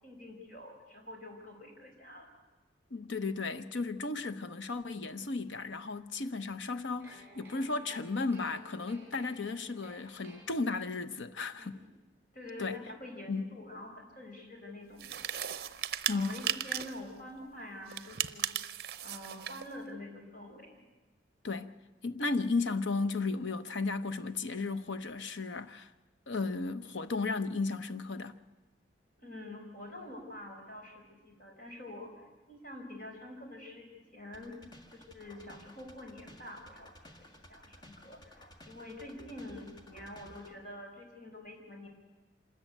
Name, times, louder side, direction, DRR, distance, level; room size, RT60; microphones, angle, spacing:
voice 1, 0.0-2.3 11.6-11.9 12.3-18.5 19.0-20.8 29.2-41.9, left 1 dB, 45° left, 4.7 m, -47 dB
voice 2, 2.9-11.8 12.6-12.8 13.3-13.4 16.1-16.4 21.4-21.7 22.0-25.9 26.3-28.4, left 3 dB, 80° left, 0.9 m, -34 dB
sound 1, 7.0-11.1, right 1 dB, 10° right, 4.9 m, -56 dB
sound 2, 15.0-17.0 17.9-19.7, right 10 dB, 55° right, 0.7 m, -36 dB
sound 3, 34.3-40.6, equal, 20° left, 1.5 m, -55 dB
26.0 x 13.5 x 9.2 m
head